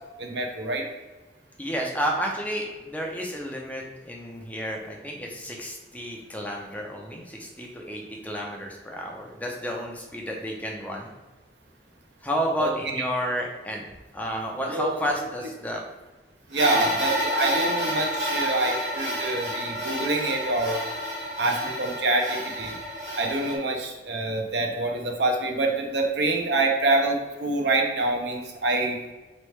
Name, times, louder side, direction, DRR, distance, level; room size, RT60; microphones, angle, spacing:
voice 1, 0.2-0.9 12.6-12.9 14.7-14.9 16.5-20.8 21.4-22.8 23.1-29.0, right 2 dB, 70° right, 2 dB, 0.7 m, -26 dB
voice 2, 1.6-11.1 12.2-13.8 14.1-15.8 16.8-16.9, equal, 10° left, 0 dB, 0.5 m, -31 dB
sound 1, 16.5-23.6, equal, 40° right, 1.0 m, -29 dB
4.4 x 3.1 x 3.2 m, 1.2 s
head